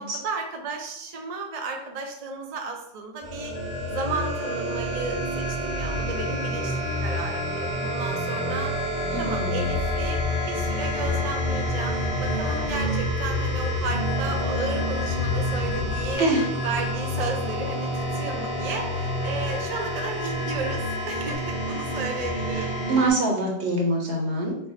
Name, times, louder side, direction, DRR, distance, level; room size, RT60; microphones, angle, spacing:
voice 1, 0.0-3.6 3.9-8.9 9.2-16.3 16.6-22.8, right 4 dB, 50° right, 3 dB, 0.5 m, -33 dB
sound 1, 3.2-23.1, equal, 50° left, 1.2 m, -29 dB
sound 2, 3.6-17.3 19.2-21.4, left 5 dB, 80° left, 0.9 m, -40 dB
voice 2, 9.1-9.7 16.2-16.5 22.5-24.6, right 2 dB, 70° right, -1 dB, 1.2 m, -25 dB
sound 3, 9.7-16.1, left 7 dB, 35° left, 0.9 m, -31 dB
4.5 x 2.0 x 4.0 m, 0.75 s
omnidirectional pair, 1.2 m